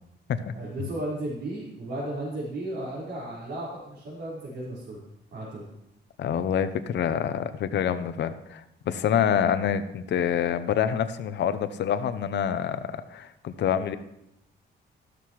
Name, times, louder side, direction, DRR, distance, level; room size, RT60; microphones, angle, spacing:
voice 1, 0.5-5.0 5.3-5.6, right 1 dB, 90° right, -9 dB, 4.8 m, -34 dB
voice 2, 6.2-14.0, left 8 dB, 70° left, 11 dB, 0.8 m, -27 dB
13.5 x 13.0 x 3.2 m, 0.83 s
cardioid pair, 135°, 19 cm